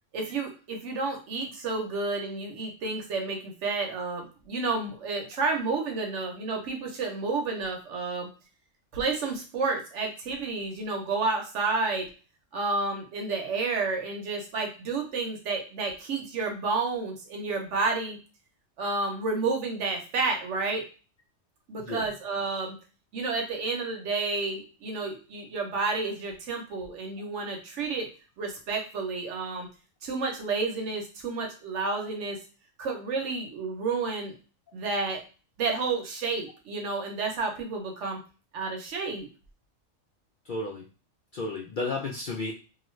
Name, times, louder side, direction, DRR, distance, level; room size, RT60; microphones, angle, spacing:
voice 1, 0.1-8.3 8.9-12.1 12.5-18.2 18.8-20.8 21.7-22.8 23.1-28.1 28.4-29.7 30.0-32.4 32.8-34.3 34.7-35.2 35.6-38.2 38.5-39.3, right 3 dB, 70° right, 2 dB, 1.0 m, -30 dB
voice 2, 40.5-40.8 41.3-42.5, left 3 dB, 65° left, 0 dB, 0.5 m, -32 dB
2.6 x 2.4 x 3.1 m, 0.35 s
omnidirectional pair, 1.3 m